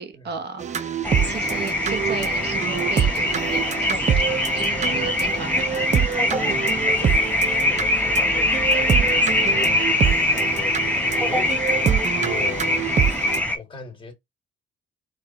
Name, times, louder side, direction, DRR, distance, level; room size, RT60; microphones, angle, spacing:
voice 1, 0.0-4.2 4.5-5.7, right 5 dB, 55° right, 1.1 m, -35 dB
sound 1, 0.6-13.4, right 8 dB, 35° right, 0.5 m, -26 dB
sound 2, 1.0-13.6, left 1 dB, 10° left, 1.2 m, -23 dB
voice 2, 6.2-11.6 12.1-12.9 13.5-14.1, left 4 dB, 25° left, 2.0 m, -39 dB
4.6 x 2.6 x 4.3 m
cardioid pair, 90°, 20 cm